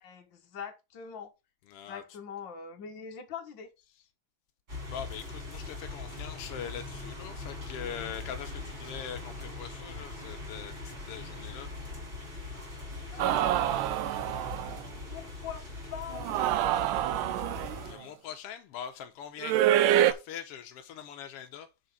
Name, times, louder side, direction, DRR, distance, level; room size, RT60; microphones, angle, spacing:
voice 1, 0.0-1.3 1.9-3.7 13.1-13.9 15.1-16.9, left 7 dB, 50° left, 1.6 m, -43 dB
voice 2, 1.7-2.0 4.9-11.7 17.8-19.6 19.9-21.7, left 9 dB, 85° left, 1.3 m, -42 dB
sound 1, 4.7-17.9, left 3 dB, 20° right, 3.3 m, -41 dB
sound 2, 13.2-14.8 16.1-17.9 19.4-20.1, right 12 dB, 80° right, 2.1 m, -26 dB
6.5 x 5.0 x 5.8 m
omnidirectional pair, 3.7 m